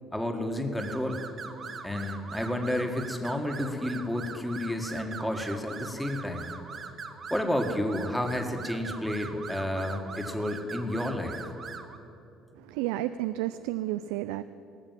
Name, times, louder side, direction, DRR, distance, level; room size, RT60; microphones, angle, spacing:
voice 1, 0.1-1.2 1.8-6.5 7.3-11.4, left 1 dB, 5° left, 4 dB, 1.7 m, -31 dB
sound 1, 0.8-12.0, right 5 dB, 45° right, 1.2 m, -42 dB
voice 2, 12.6-14.4, right 15 dB, 85° right, 13 dB, 0.3 m, -31 dB
18.5 x 6.6 x 7.6 m, 2.8 s
supercardioid pair, 85°, 0 cm